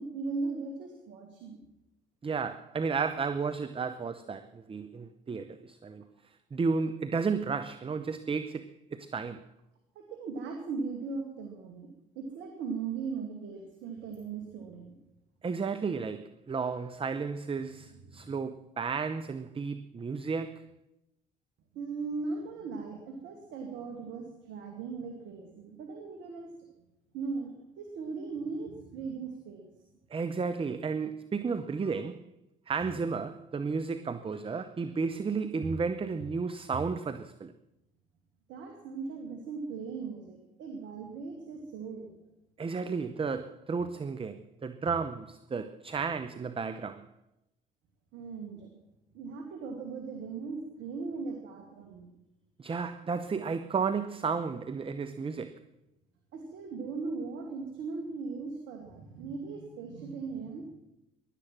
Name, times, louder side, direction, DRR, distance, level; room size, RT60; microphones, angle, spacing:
voice 1, 0.0-1.6 10.0-15.0 17.7-18.3 21.7-26.5 27.1-29.7 38.5-42.1 48.1-48.7 49.1-52.1 56.3-60.8, right 4 dB, 65° right, 2.2 m, -38 dB
voice 2, 2.2-6.0 6.5-9.4 15.4-20.7 30.1-32.3 32.7-37.5 42.6-47.1 52.6-55.6, right 5 dB, 25° right, 0.9 m, -33 dB
17.0 x 11.5 x 6.1 m
hypercardioid pair, 55°, 20 cm